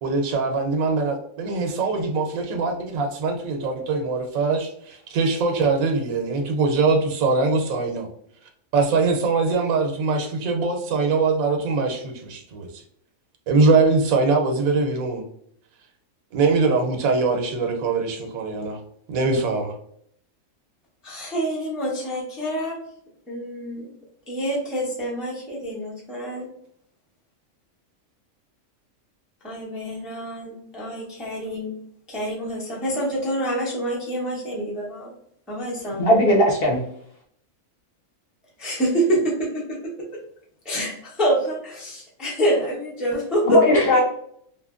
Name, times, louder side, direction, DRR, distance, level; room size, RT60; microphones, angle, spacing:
voice 1, 0.0-8.1 8.7-12.8 13.5-15.2 16.3-18.8 19.1-19.7, right 4 dB, 90° right, 4 dB, 1.0 m, -22 dB
voice 2, 21.0-22.8 23.3-23.9 24.3-26.5 29.4-31.7 32.1-35.1 35.5-36.0 38.6-40.2 40.6-43.6 43.9-44.0, right 1 dB, ahead, -4 dB, 0.4 m, -26 dB
voice 3, 36.0-36.8 43.5-44.0, left 1 dB, 65° left, -1 dB, 0.6 m, -18 dB
2.8 x 2.4 x 2.4 m, 0.68 s
omnidirectional pair, 1.4 m